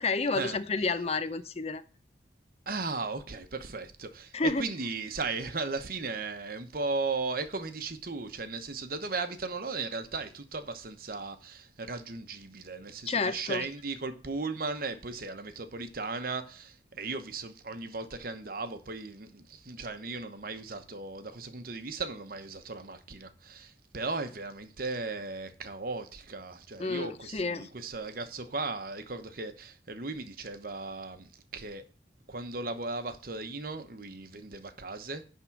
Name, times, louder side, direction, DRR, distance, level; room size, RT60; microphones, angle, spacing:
voice 1, 0.0-1.8 4.3-4.7 13.1-13.7 26.8-27.7, left 4 dB, 35° left, 0.6 m, -30 dB
voice 2, 2.7-31.8 32.3-35.2, right 3 dB, 50° right, 1.0 m, -36 dB
10.5 x 3.7 x 7.1 m
head